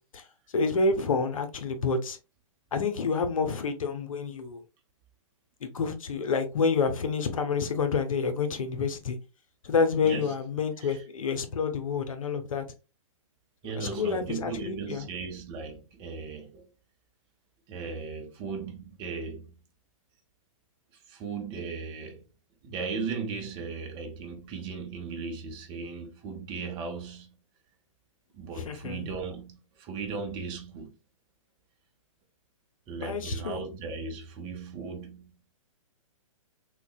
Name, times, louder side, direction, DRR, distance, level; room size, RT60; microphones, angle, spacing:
voice 1, 0.5-2.2 2.7-4.6 5.6-9.2 9.6-12.7 13.6-15.1 28.6-29.1 33.0-33.6, left 4 dB, 70° left, 0.7 m, -28 dB
voice 2, 13.6-16.7 17.7-19.5 21.1-22.2 22.6-27.3 28.3-31.0 32.9-35.3, right 5 dB, 25° right, 0.7 m, -37 dB
3.9 x 2.2 x 2.3 m
hypercardioid pair, 125°, 18 cm